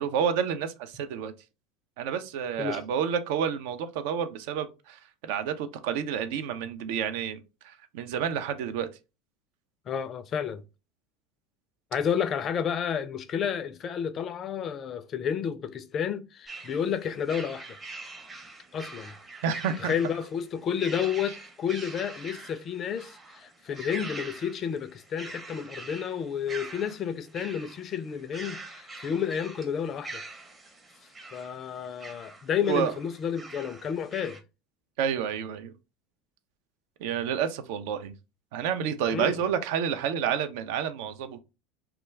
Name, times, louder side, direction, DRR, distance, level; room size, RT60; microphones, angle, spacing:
voice 1, 0.0-1.3 2.0-8.9 19.4-19.9 32.7-32.9 35.0-35.7 37.0-38.1 38.5-41.4, right 8 dB, 65° right, 0.4 m, -29 dB
voice 2, 9.9-10.6 11.9-17.8 18.7-19.1 19.8-30.2 31.3-34.4 39.1-39.4, left 8 dB, 40° left, 0.3 m, -31 dB
sound 1, 16.5-34.4, right 3 dB, 20° right, 0.7 m, -44 dB
2.3 x 2.2 x 3.1 m
hypercardioid pair, 75°, 0 cm